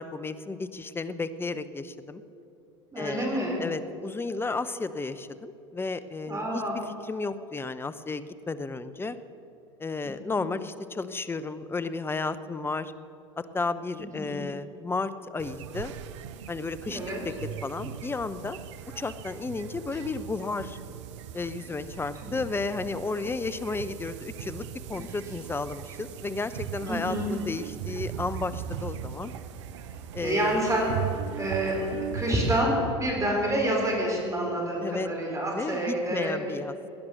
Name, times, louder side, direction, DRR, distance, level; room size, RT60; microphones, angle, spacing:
voice 1, 0.0-2.2 3.0-9.2 9.8-12.9 13.4-15.9 16.5-17.0 17.2-17.3 17.6-18.6 19.0-20.8 21.3-29.3 30.1-30.6 34.8-35.1 35.5-36.7, left 3 dB, 15° left, 13 dB, 0.7 m, -33 dB
voice 2, 2.9-3.6 6.3-6.8 10.3-10.4 14.2-14.4 16.9-17.2 26.9-27.3 30.2-30.9 31.4-31.8 32.1-36.4, right 1 dB, 20° right, -1 dB, 4.2 m, -28 dB
sound 1, 15.4-32.6, right 10 dB, 70° right, 0.8 m, -39 dB
17.5 x 10.5 x 6.5 m, 2.8 s
hypercardioid pair, 80°, 16 cm